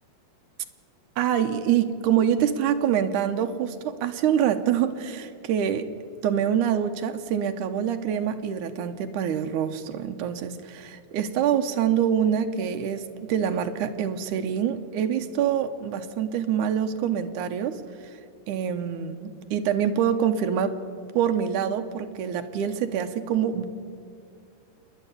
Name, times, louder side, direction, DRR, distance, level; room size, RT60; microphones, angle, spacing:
voice 1, 1.2-5.9 6.2-17.8 18.5-20.8 21.1-23.6, right 9 dB, 75° right, 7 dB, 2.0 m, -25 dB
26.5 x 10.5 x 9.6 m, 2.4 s
omnidirectional pair, 4.2 m